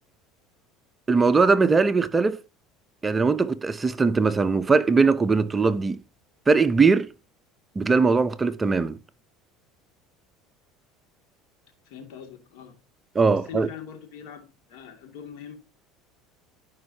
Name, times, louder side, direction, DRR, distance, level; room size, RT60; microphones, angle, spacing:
voice 1, 1.1-2.4 3.0-6.0 6.5-7.1 7.8-9.0 13.1-13.7, right 4 dB, 20° right, 0.6 m, -20 dB
voice 2, 11.9-12.8 13.3-15.5, left 8 dB, 70° left, 2.3 m, -42 dB
13.0 x 5.3 x 2.8 m
supercardioid pair, 105°, 0 cm